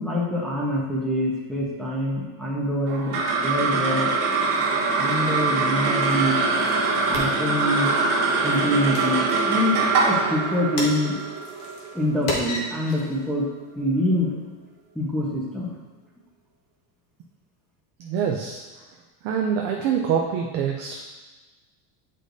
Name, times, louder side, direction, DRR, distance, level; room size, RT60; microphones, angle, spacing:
voice 1, 0.0-4.1 4.9-6.4 7.1-7.9 8.4-11.2 11.9-13.5 13.7-14.3 14.9-15.7, left 1 dB, ahead, -5 dB, 0.9 m, -25 dB
sound 1, 2.9-13.5, right 4 dB, 70° right, 1.5 m, -24 dB
sound 2, 6.3-13.2, left 1 dB, 45° left, 1.6 m, -36 dB
voice 2, 18.0-18.6 19.2-21.1, right 7 dB, 35° right, 0 dB, 0.4 m, -25 dB
8.3 x 5.0 x 2.6 m, 1.3 s
cardioid pair, 165°, 46 cm